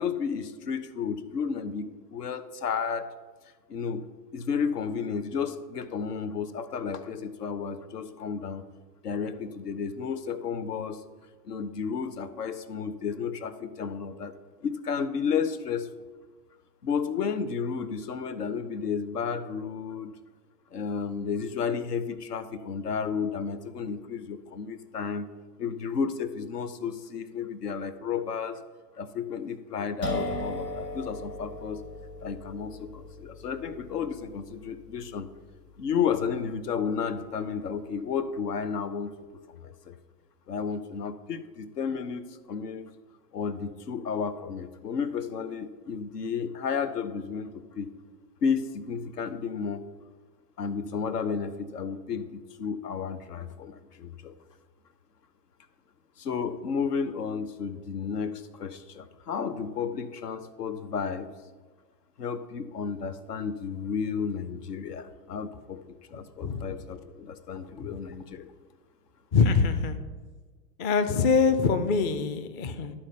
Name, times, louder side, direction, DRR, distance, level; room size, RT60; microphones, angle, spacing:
voice 1, 0.0-3.1 3.7-4.0 4.3-8.6 9.0-11.0 11.4-14.4 14.6-15.9 16.8-20.1 20.7-25.3 25.6-28.6 29.0-31.8 32.2-35.3 35.8-39.1 39.5-40.0 40.5-42.9 43.3-47.9 48.4-49.8 50.6-54.4 56.2-61.3 62.2-68.5, left 6 dB, 70° left, 11 dB, 0.9 m, -32 dB
sound 1, 30.0-37.6, left 1 dB, 85° left, 2.3 m, -39 dB
voice 2, 69.3-70.0 70.8-72.9, left 5 dB, 25° left, 9 dB, 0.5 m, -24 dB
12.0 x 4.3 x 6.6 m, 1.4 s
figure-of-eight pair, 100°, 48 cm